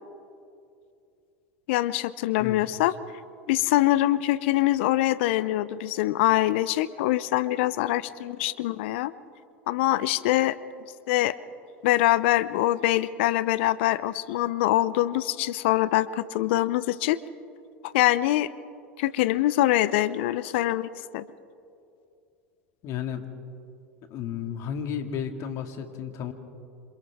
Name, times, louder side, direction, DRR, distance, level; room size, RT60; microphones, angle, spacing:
voice 1, 1.7-2.9 3.5-9.1 9.7-10.6 11.1-11.4 11.8-17.2 17.8-18.5 19.0-21.3, left 15 dB, 65° left, 17 dB, 0.6 m, -24 dB
voice 2, 22.8-23.2 24.1-26.3, left 8 dB, 50° left, 6 dB, 2.1 m, -33 dB
27.5 x 27.0 x 3.6 m, 2.6 s
hypercardioid pair, 85°, 7 cm